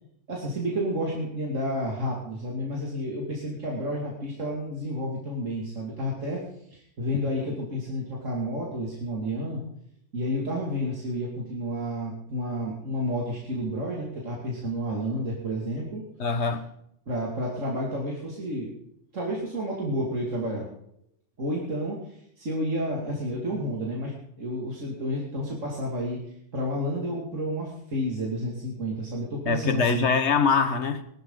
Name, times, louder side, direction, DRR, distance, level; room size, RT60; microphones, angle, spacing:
voice 1, 0.3-6.4 6.7-9.6 10.1-16.0 17.1-18.7 19.1-20.7 21.4-24.1 24.4-26.2 26.5-30.1, equal, 90° right, 2.9 m, -30 dB
voice 2, 16.2-16.6 29.5-31.0, left 5 dB, 65° left, 1.6 m, -23 dB
19.5 x 13.0 x 3.9 m
omnidirectional pair, 1.3 m